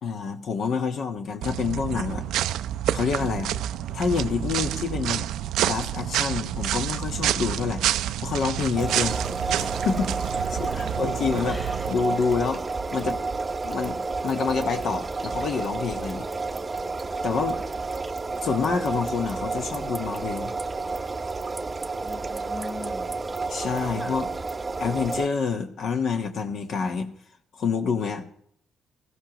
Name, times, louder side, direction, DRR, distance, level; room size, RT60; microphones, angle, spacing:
voice 1, 0.0-2.2 2.9-3.5 3.9-5.3 5.6-7.8 8.2-9.2 9.6-10.1 10.5-11.6 11.9-12.6 12.9-13.2 13.6-14.0 14.2-16.3 17.2-17.6 18.4-20.5 23.5-24.3 24.8-27.1 27.6-28.2, left 5 dB, 65° left, 5 dB, 1.3 m, -27 dB
sound 1, 1.4-11.9, right 12 dB, 85° right, 0.4 m, -28 dB
sound 2, 8.8-25.3, right 3 dB, 30° right, 0.7 m, -30 dB
voice 2, 10.5-10.9 11.5-11.9 12.1-12.3 17.5-17.7 22.0-23.1 24.0-24.1, left 2 dB, 10° left, 6 dB, 1.6 m, -41 dB
17.5 x 14.5 x 3.0 m, 0.66 s
cardioid pair, 90°, 0 cm